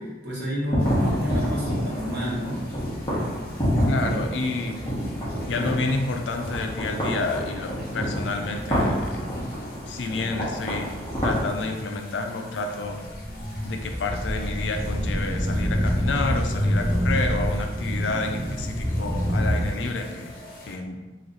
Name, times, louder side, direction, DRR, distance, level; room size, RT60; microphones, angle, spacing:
voice 1, 0.0-2.6, equal, 60° right, -7 dB, 1.3 m, -30 dB
sound 1, 0.7-11.5, equal, 20° left, 1.1 m, -28 dB
sound 2, 0.8-20.8, left 1 dB, 50° left, 1.0 m, -45 dB
voice 2, 3.9-4.9 5.5-9.3 9.9-13.0 13.6-20.3 20.7-21.0, left 3 dB, 80° left, 4 dB, 0.5 m, -29 dB
sound 3, 12.8-19.6, equal, 20° right, 0.8 m, -26 dB
3.1 x 2.8 x 3.9 m, 1.2 s
head